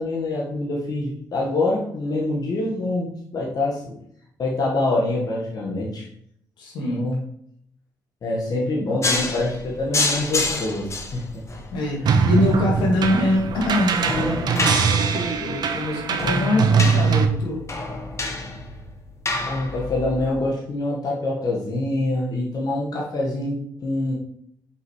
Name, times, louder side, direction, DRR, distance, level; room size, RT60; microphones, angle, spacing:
voice 1, 0.0-3.9 4.4-6.1 6.9-7.2 8.2-11.6 12.0-12.1 19.4-24.1, left 2 dB, 55° left, -4 dB, 1.6 m, -25 dB
voice 2, 6.6-7.1 11.7-17.6, left 1 dB, 80° left, -2 dB, 2.1 m, -24 dB
sound 1, 9.0-20.3, left 2 dB, 35° left, 1.3 m, -28 dB
sound 2, 12.1-17.3, right 5 dB, 60° right, 0.7 m, -22 dB
5.4 x 5.3 x 3.3 m, 0.69 s
supercardioid pair, 60°, 8 cm